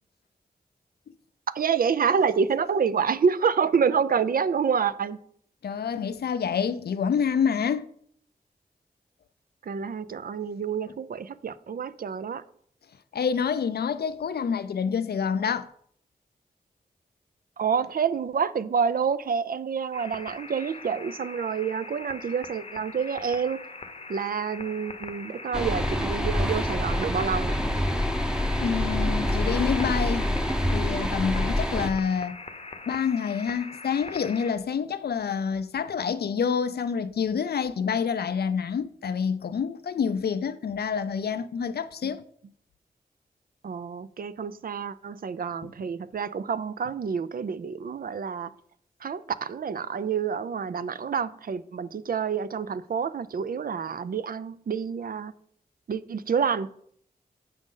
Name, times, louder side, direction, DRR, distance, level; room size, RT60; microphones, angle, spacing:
voice 1, 1.5-5.2 9.6-12.4 17.6-23.6 24.1-27.6 42.0-42.1 43.6-48.5 49.0-55.3 55.9-56.7, right 6 dB, 65° right, 0.4 m, -28 dB
voice 2, 5.6-7.9 13.1-15.7 28.6-30.3 30.7-32.4 32.9-42.2, left 6 dB, 80° left, 0.4 m, -27 dB
sound 1, 19.9-34.5, left 3 dB, 40° left, 0.7 m, -42 dB
sound 2, 25.5-31.9, left 1 dB, 5° right, 0.7 m, -26 dB
7.5 x 5.1 x 3.8 m
cardioid pair, 55°, 16 cm